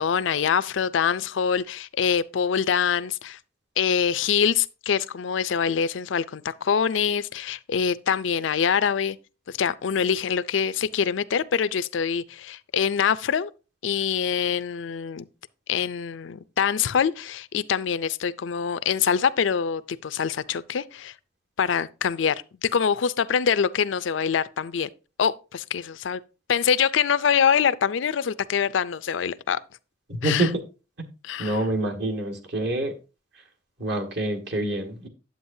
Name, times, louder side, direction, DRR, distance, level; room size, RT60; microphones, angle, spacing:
voice 1, 0.0-3.4 3.8-9.2 9.5-13.5 13.8-15.2 15.7-21.1 21.6-24.9 25.2-26.2 26.5-29.6 30.2-30.5 31.2-31.6, left 7 dB, 80° left, 0.4 m, -24 dB
voice 2, 30.1-30.5 31.4-32.9 33.8-35.1, right 1 dB, 60° right, 1.7 m, -26 dB
9.4 x 7.9 x 2.7 m
head